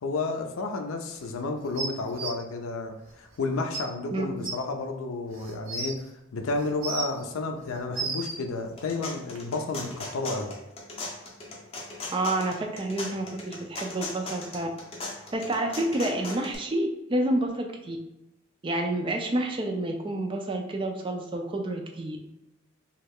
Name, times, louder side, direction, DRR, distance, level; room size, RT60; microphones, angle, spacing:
voice 1, 0.0-6.0 6.3-10.5, left 3 dB, 80° left, 4 dB, 0.4 m, -31 dB
sound 1, 1.8-2.3 3.3-3.4 3.7-3.8 4.4-4.5 5.3-5.9 6.6-7.2 7.7-8.4 9.4-9.5, right 4 dB, 80° right, 0.7 m, -33 dB
voice 2, 4.1-4.5 12.1-14.7 15.3-18.0 18.6-22.2, right 1 dB, 25° right, 3 dB, 0.3 m, -29 dB
sound 2, 8.6-16.5, left 2 dB, 30° left, 0.5 m, -38 dB
3.1 x 2.3 x 3.5 m, 0.93 s
head